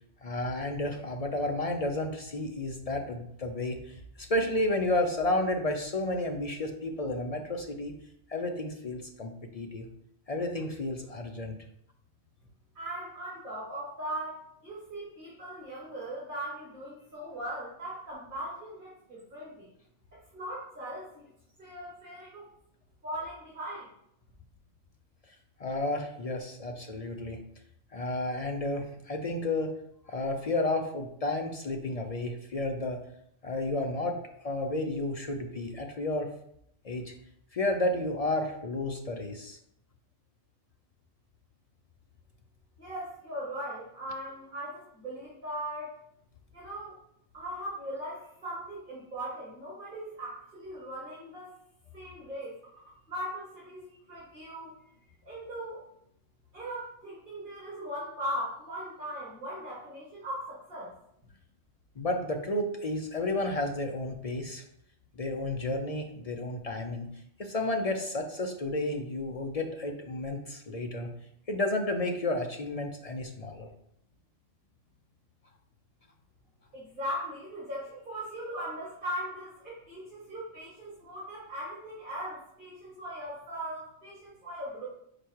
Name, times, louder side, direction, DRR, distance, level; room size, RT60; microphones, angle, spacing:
voice 1, 0.2-7.9 8.3-9.9 10.3-11.6 25.6-27.4 27.9-29.8 30.1-33.0 33.4-36.3 36.8-37.1 37.5-39.6 62.0-64.6 65.2-67.1 67.4-71.1 71.5-73.7, left 2 dB, 50° left, 3 dB, 0.4 m, -32 dB
voice 2, 12.7-19.7 20.1-21.3 21.6-22.5 23.0-23.9 42.8-46.0 46.5-47.0 47.3-51.5 51.9-52.5 53.1-54.7 55.2-55.8 56.5-60.9 76.7-84.9, equal, 40° right, -7 dB, 1.9 m, -39 dB
4.9 x 4.6 x 4.4 m, 0.74 s
omnidirectional pair, 1.3 m